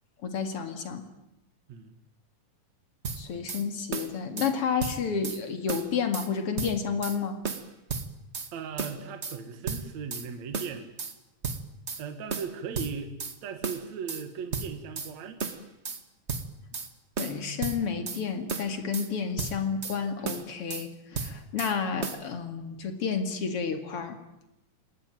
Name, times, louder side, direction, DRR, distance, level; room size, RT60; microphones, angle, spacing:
voice 1, 0.2-1.0 3.2-7.4 17.2-24.2, left 6 dB, 45° left, 7 dB, 2.9 m, -31 dB
sound 1, 3.0-3.6 3.9-4.5 4.8-5.4 5.7-6.3 6.6-7.2 7.4-8.5 8.8-9.4 9.7-10.3 10.5-11.1 11.4-12.0 12.3-13.4 13.6-14.2 14.5-15.1 15.4-16.0 16.3-16.9 17.2-18.2 18.5-19.1 19.4-20.0 20.2-20.9 21.1-21.7 22.0-22.2, right 5 dB, 40° right, 1.0 m, -34 dB
voice 2, 8.5-10.9 12.0-13.1 13.4-15.4, right 6 dB, 60° right, 7 dB, 2.8 m, -38 dB
27.5 x 20.0 x 9.2 m, 0.90 s
omnidirectional pair, 3.8 m